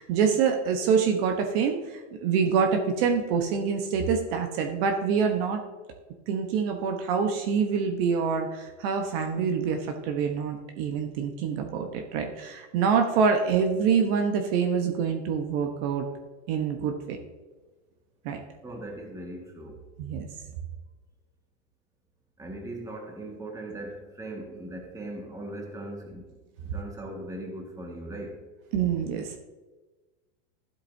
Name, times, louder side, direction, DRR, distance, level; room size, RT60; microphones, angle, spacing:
voice 1, 0.0-5.6 6.3-16.1 16.5-17.2 18.2-18.4 20.0-20.2 28.7-29.4, right 6 dB, 50° right, 4 dB, 1.1 m, -26 dB
voice 2, 18.6-19.8 22.4-28.4, right 1 dB, 10° right, 0 dB, 1.8 m, -39 dB
13.0 x 8.0 x 2.7 m, 1.2 s
supercardioid pair, 135°, 37 cm